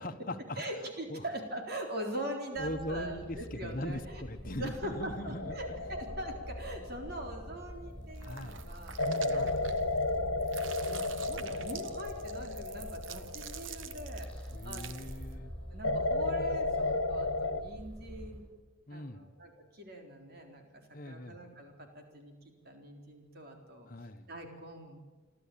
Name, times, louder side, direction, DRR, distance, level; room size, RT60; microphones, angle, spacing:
voice 1, 0.0-0.6 1.1-1.3 2.5-5.8 8.2-8.8 9.0-9.5 14.5-15.5 18.9-19.3 20.9-21.4 23.9-24.3, left 1 dB, 45° left, 6 dB, 1.3 m, -40 dB
voice 2, 0.6-9.0 9.3-10.0 10.9-15.2 15.7-18.4 18.9-22.3 22.6-23.9 24.3-25.0, right 1 dB, 50° right, 3 dB, 4.0 m, -42 dB
sound 1, 2.5-18.4, equal, 5° left, 6.1 m, -46 dB
sound 2, 5.4-8.1 9.0-14.8 15.8-17.6, left 2 dB, 90° left, 1.1 m, -34 dB
sound 3, 8.1-10.1 10.4-15.3, right 9 dB, 75° right, 1.1 m, -48 dB
27.5 x 12.5 x 8.7 m, 1.3 s
head